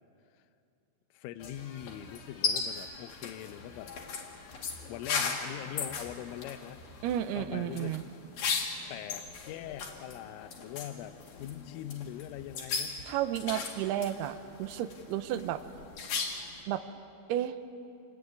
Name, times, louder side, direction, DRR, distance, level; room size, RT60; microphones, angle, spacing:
voice 1, 1.1-3.9 4.9-7.0 7.4-8.0 8.9-13.0, left 12 dB, 90° left, 10 dB, 3.4 m, -42 dB
sound 1, 1.4-16.6, left 5 dB, 55° left, 3.7 m, -38 dB
voice 2, 7.0-8.0 13.1-15.6 16.7-16.8 17.3-17.6, right 11 dB, 75° right, 10 dB, 2.4 m, -32 dB
28.0 x 21.5 x 9.5 m, 2.6 s
omnidirectional pair, 5.6 m